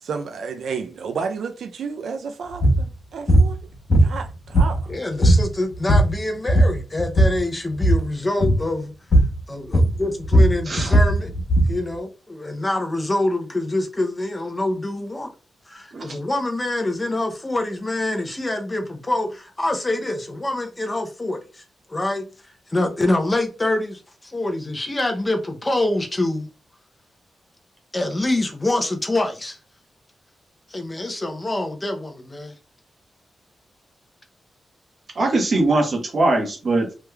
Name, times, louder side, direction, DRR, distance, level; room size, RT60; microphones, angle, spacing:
voice 1, 0.0-3.6 4.0-4.9, right 5 dB, 75° right, 0.4 m, -31 dB
sound 1, 2.5-2.8 3.3-3.5 3.9-4.9 5.2-5.5 5.7-6.2 6.5-7.4 7.7-8.0 8.4-8.6 9.1-9.4 9.7-11.8, right 1 dB, 45° left, 1.2 m, -16 dB
voice 2, 4.9-8.9 9.5-11.3 11.7-15.3 15.7-21.6 21.9-26.5 27.9-29.6 30.7-32.5, left 2 dB, 15° left, 0.5 m, -25 dB
voice 3, 35.2-36.9, right 2 dB, 40° right, 1.1 m, -21 dB
3.3 x 3.1 x 2.2 m
wide cardioid pair, 145°, 0 cm